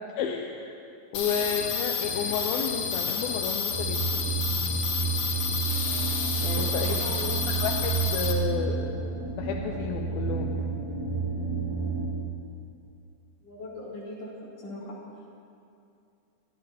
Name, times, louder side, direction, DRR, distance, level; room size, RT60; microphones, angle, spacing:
voice 1, 0.2-0.8 1.1-4.2 6.4-7.0 7.5-9.0 9.3-10.7, left 7 dB, 80° left, 2 dB, 2.6 m, -31 dB
sound 1, 1.1-8.3, left 6 dB, 65° left, 1.8 m, -30 dB
sound 2, 3.7-12.1, right 5 dB, 90° right, 5.7 m, -30 dB
sound 3, 6.0-9.9, right 1 dB, 70° right, 3.9 m, -48 dB
voice 2, 6.7-7.3 13.4-14.3 14.6-15.0, left 2 dB, 45° left, -7 dB, 4.1 m, -39 dB
22.5 x 15.0 x 2.9 m, 2.6 s
omnidirectional pair, 4.3 m